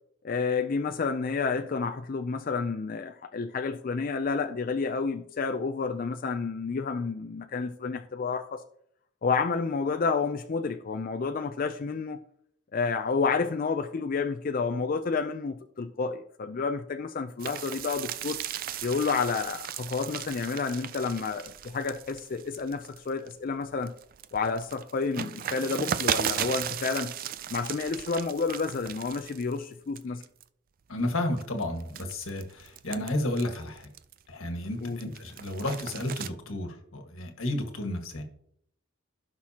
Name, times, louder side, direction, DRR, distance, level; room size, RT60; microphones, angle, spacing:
voice 1, 0.2-8.6 9.2-12.2 12.7-18.4 18.8-23.9 24.3-27.1 27.5-30.2 34.8-35.0, left 4 dB, 45° left, 0.4 m, -30 dB
sound 1, 17.4-23.3 23.8-29.6 30.0-30.4 31.0-34.3 34.7-36.3, right 9 dB, 45° right, 0.4 m, -36 dB
voice 2, 30.9-33.9 34.3-38.2, left 1 dB, 85° left, 1.6 m, -32 dB
16.0 x 5.9 x 2.9 m
head